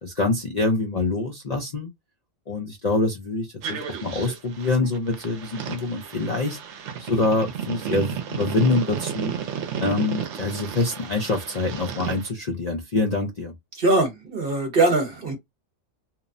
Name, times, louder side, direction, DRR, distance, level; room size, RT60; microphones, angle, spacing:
voice 1, 0.0-1.9 2.5-6.6 7.0-9.3 9.8-13.5, left 3 dB, 50° left, 0.5 m, -25 dB
sound 1, 3.6-12.3, right 8 dB, 70° right, 0.9 m, -33 dB
voice 2, 13.7-15.4, right 2 dB, 50° right, 1.2 m, -21 dB
2.8 x 2.0 x 2.5 m
omnidirectional pair, 1.3 m